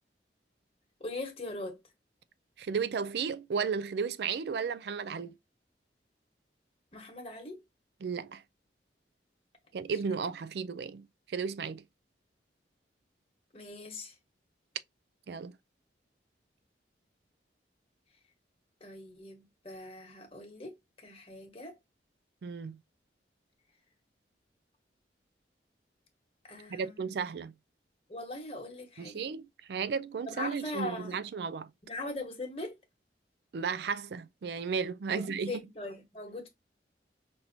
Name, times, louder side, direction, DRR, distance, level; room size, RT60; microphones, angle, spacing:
voice 1, 1.0-1.8 6.9-7.6 13.5-14.1 18.8-21.8 26.4-27.1 28.1-29.3 30.3-31.2 31.9-32.8 35.1-36.5, left 2 dB, 35° left, 1.3 m, -41 dB
voice 2, 2.6-5.3 8.0-8.4 9.7-11.8 15.3-15.5 22.4-22.8 26.7-27.5 29.0-31.7 33.5-35.5, right 6 dB, 65° right, 0.4 m, -34 dB
5.9 x 2.7 x 2.7 m
head